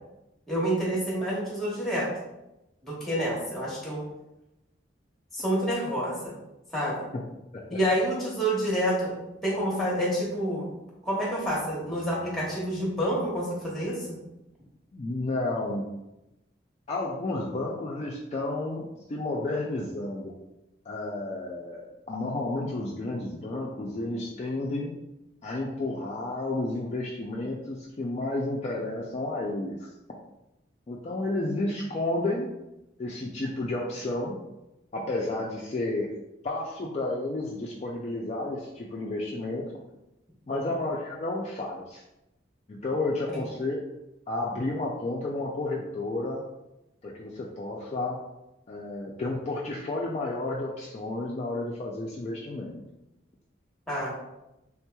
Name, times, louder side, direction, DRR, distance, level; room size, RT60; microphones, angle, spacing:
voice 1, 0.5-2.1 2.8-4.0 5.3-6.3 6.7-7.0 7.7-9.2 9.4-10.7 11.0-14.2 40.5-40.6 43.3-43.4 53.9-54.1, equal, ahead, -5 dB, 0.9 m, -28 dB
voice 2, 14.9-15.9 16.9-20.3 20.9-24.9 25.4-29.8 30.9-32.5 33.0-34.4 34.9-36.1 36.4-39.6 40.5-42.0 42.7-43.8 44.3-46.4 47.0-48.2 48.7-52.8, left 2 dB, 35° left, -3 dB, 0.3 m, -31 dB
3.6 x 2.9 x 2.2 m, 0.93 s
head